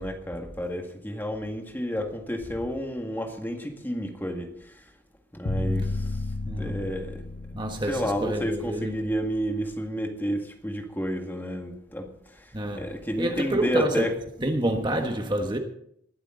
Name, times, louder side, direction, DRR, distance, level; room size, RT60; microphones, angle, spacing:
voice 1, 0.0-4.8 5.3-6.2 6.6-7.2 7.9-14.1, equal, 10° left, 1.9 m, -31 dB
sound 1, 5.4-9.5, left 2 dB, 45° left, 0.9 m, -32 dB
voice 2, 6.4-6.8 7.5-9.0 12.5-12.9 13.2-14.1 14.4-15.6, right 1 dB, 25° right, 1.3 m, -28 dB
20.5 x 12.0 x 3.9 m
head